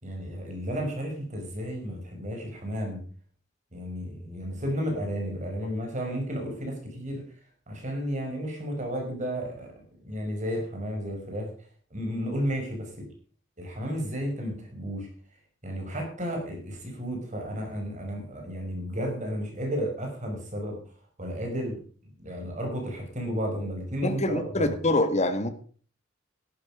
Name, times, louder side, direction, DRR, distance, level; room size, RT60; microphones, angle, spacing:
voice 1, 0.0-3.0 3.7-7.2 7.7-9.7 10.0-11.5 11.9-13.0 13.6-15.1 15.6-20.8 21.2-21.8 22.2-24.7, equal, 40° right, 2 dB, 5.6 m, -32 dB
voice 2, 24.0-25.5, left 2 dB, 35° left, 8 dB, 1.8 m, -25 dB
14.0 x 12.0 x 5.0 m, 0.43 s
head